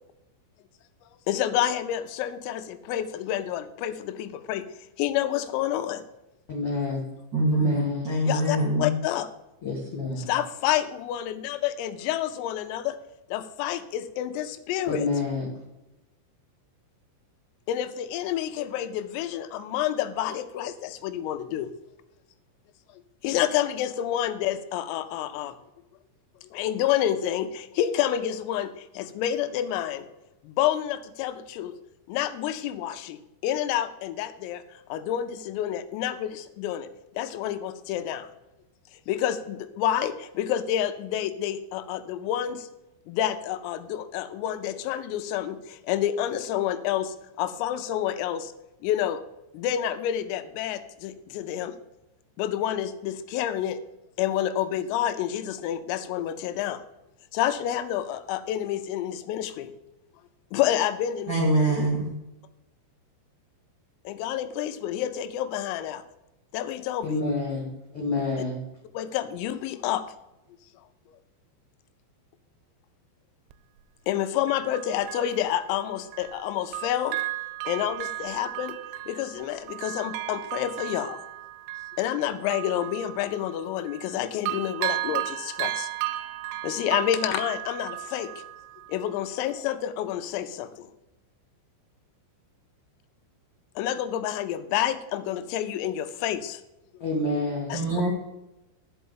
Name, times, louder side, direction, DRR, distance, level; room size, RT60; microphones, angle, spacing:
voice 1, 1.3-4.7 5.0-6.0 8.3-9.3 10.2-13.0 13.3-15.1 17.7-21.7 23.2-25.6 26.4-30.1 30.4-31.7 32.1-36.9 37.2-38.3 39.1-42.7 43.1-48.5 48.8-49.2 49.5-51.7 52.4-53.8 54.2-56.8 57.3-59.7 60.5-61.3 64.1-66.0 66.5-67.1 69.0-70.0 74.1-77.2 77.7-78.8 79.1-81.2 82.0-85.9 86.6-88.3 88.9-90.9 93.8-96.6 97.7-97.8, left 11 dB, 85° left, 3.4 m, -29 dB
voice 2, 6.5-7.0 7.5-8.1 9.6-10.3 14.9-15.4 67.0-68.6 97.0-97.8, left 3 dB, 60° left, 1.5 m, -28 dB
voice 3, 7.3-8.9 61.3-62.1 97.7-98.1, right 1 dB, 40° right, 1.7 m, -24 dB
Bell, 73.5-73.6 74.5-76.4 76.7-84.2 84.5-89.1 89.5-89.6, right 16 dB, 85° right, 2.8 m, -35 dB
11.5 x 5.5 x 7.0 m
omnidirectional pair, 5.9 m